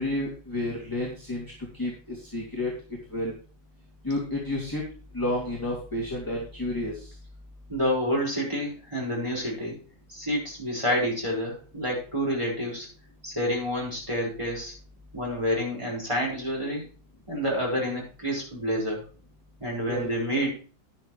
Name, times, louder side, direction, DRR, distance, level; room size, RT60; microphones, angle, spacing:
voice 1, 0.0-1.4 1.7-2.7 3.1-3.4 4.0-4.8 5.1-7.1 19.9-20.1, left 1 dB, 10° left, -4 dB, 2.6 m, -30 dB
voice 2, 7.7-9.8 10.1-12.9 13.2-14.7 15.1-16.8 17.3-19.0 19.6-20.6, equal, 15° right, -3 dB, 5.1 m, -28 dB
11.0 x 10.0 x 3.2 m, 0.37 s
omnidirectional pair, 2.0 m